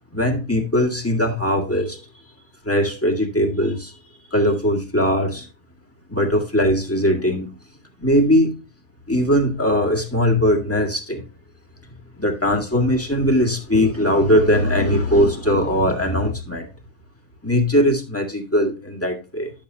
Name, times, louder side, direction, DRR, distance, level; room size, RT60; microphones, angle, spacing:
voice 1, 0.1-2.0 2.6-3.9 4.3-5.5 6.1-7.5 8.0-8.6 9.1-11.2 12.2-16.7 17.4-19.5, equal, 10° left, 0 dB, 1.8 m, -20 dB
11.0 x 7.5 x 2.7 m, 0.30 s
omnidirectional pair, 1.5 m